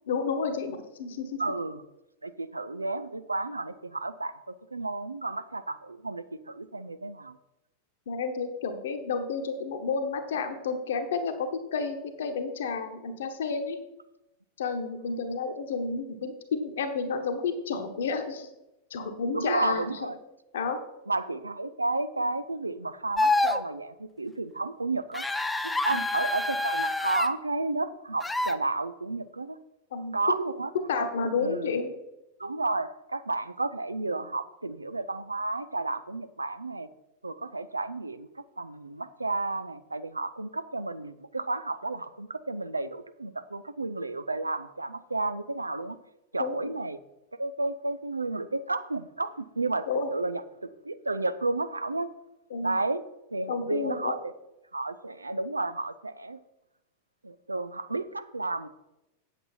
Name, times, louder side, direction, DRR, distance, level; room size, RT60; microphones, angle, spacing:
voice 1, 0.1-1.4 8.1-13.8 14.6-18.5 18.9-20.1 20.5-20.8 25.9-26.0 29.9-30.1 30.7-31.9 46.4-46.7 49.9-50.1 52.5-52.8 53.5-54.2, left 5 dB, 60° left, 8 dB, 1.2 m, -31 dB
voice 2, 1.4-1.8 2.2-7.3 19.3-20.2 21.1-25.3 25.6-29.6 30.1-30.7 31.0-31.1 31.4-31.7 32.4-36.9 37.2-38.3 38.6-46.0 46.3-47.0 47.4-52.1 52.6-53.0 53.3-54.3 54.7-56.4 57.2-58.7, right 2 dB, 80° right, 13 dB, 0.5 m, -32 dB
sound 1, 23.2-23.6 25.1-27.3 28.2-28.5, left 2 dB, 5° left, 0.5 m, -27 dB
8.3 x 8.0 x 4.4 m, 0.92 s
figure-of-eight pair, 90°, 0 cm